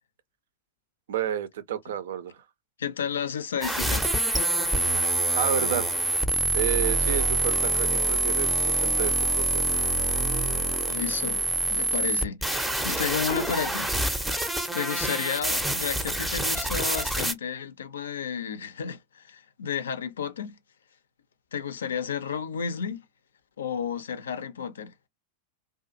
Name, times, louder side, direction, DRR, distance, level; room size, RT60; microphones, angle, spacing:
voice 1, 1.1-2.4 5.3-5.9 6.5-9.8, right 10 dB, 60° right, 0.4 m, -31 dB
voice 2, 2.8-4.1 10.9-11.4 11.7-14.3 14.7-20.5 21.5-23.0 23.6-24.9, left 7 dB, 65° left, 0.5 m, -32 dB
sound 1, 3.6-17.3, right 2 dB, 5° right, 0.5 m, -26 dB
2.5 x 2.3 x 2.5 m
figure-of-eight pair, 90°, 0 cm